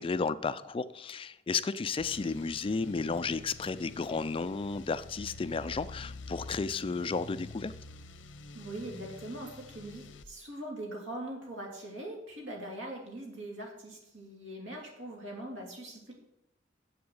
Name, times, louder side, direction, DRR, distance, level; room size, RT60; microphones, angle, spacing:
voice 1, 0.0-7.7, left 4 dB, 30° left, 14 dB, 0.4 m, -33 dB
sound 1, 2.0-10.2, left 3 dB, 75° left, 0.8 m, -47 dB
voice 2, 8.5-16.1, right 1 dB, 85° right, 0 dB, 3.1 m, -42 dB
7.9 x 6.7 x 7.8 m, 0.84 s
head